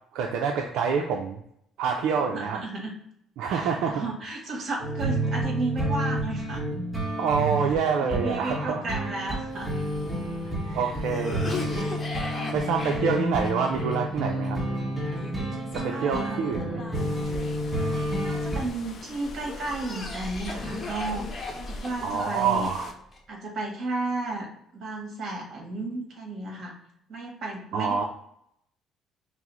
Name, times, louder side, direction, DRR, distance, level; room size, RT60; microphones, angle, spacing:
voice 1, 0.1-1.4 1.8-2.6 3.4-4.0 7.2-8.8 10.7-11.9 12.3-14.6 15.7-16.8 22.0-22.9 27.7-28.0, right 6 dB, 75° right, 2 dB, 0.4 m, -27 dB
voice 2, 2.2-2.9 3.5-6.6 8.0-9.7 10.6-11.5 12.4-12.7 15.9-16.4 18.2-21.3 21.6-22.7 23.3-26.7 27.1-28.0, right 2 dB, 50° right, 1 dB, 1.3 m, -33 dB
sound 1, 4.8-18.6, right 1 dB, 10° right, 1.2 m, -30 dB
Cough, 9.4-18.7 19.2-23.2, left 3 dB, 25° left, 0.9 m, -39 dB
sound 2, 16.9-22.9, left 2 dB, 50° left, 0.5 m, -41 dB
5.8 x 2.0 x 3.0 m, 0.75 s
cardioid pair, 100°, 0 cm